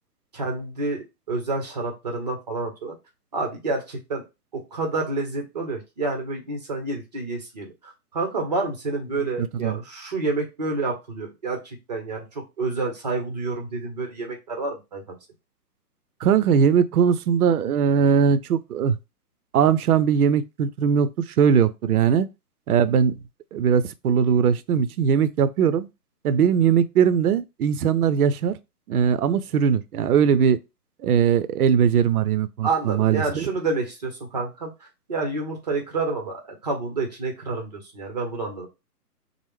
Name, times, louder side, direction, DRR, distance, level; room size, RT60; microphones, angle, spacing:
voice 1, 0.3-2.9 3.3-4.3 4.5-15.2 32.6-38.7, right 3 dB, 25° right, 0.6 m, -29 dB
voice 2, 16.2-19.0 19.5-22.3 22.7-23.1 23.5-25.9 26.2-28.6 28.9-30.6 31.0-33.5, right 7 dB, 65° right, 0.5 m, -20 dB
3.0 x 2.0 x 3.4 m
hypercardioid pair, 150°, 49 cm